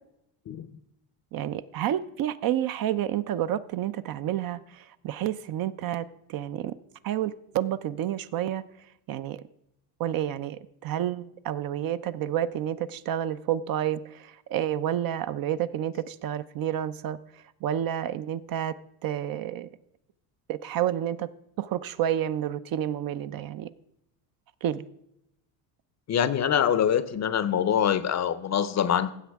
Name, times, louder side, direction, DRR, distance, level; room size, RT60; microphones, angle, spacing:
voice 1, 1.3-6.8 7.0-8.6 9.1-9.4 10.0-17.2 17.6-19.7 20.5-21.3 21.6-23.7 24.6-24.8, right 11 dB, 45° right, 13 dB, 0.5 m, -30 dB
voice 2, 26.1-29.1, left 9 dB, 35° left, 15 dB, 0.6 m, -24 dB
16.0 x 7.2 x 3.5 m, 0.80 s
supercardioid pair, 95°, 50 cm